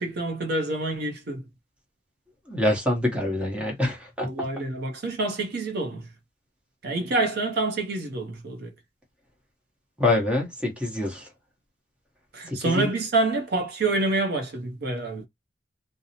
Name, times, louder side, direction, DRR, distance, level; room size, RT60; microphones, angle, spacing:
voice 1, 0.0-1.5 4.2-6.1 6.8-8.7 12.3-15.3, right 2 dB, 60° right, 0.6 m, -27 dB
voice 2, 2.5-4.3 10.0-11.3 12.5-12.9, left 1 dB, 5° right, 0.9 m, -25 dB
2.6 x 2.0 x 2.8 m
head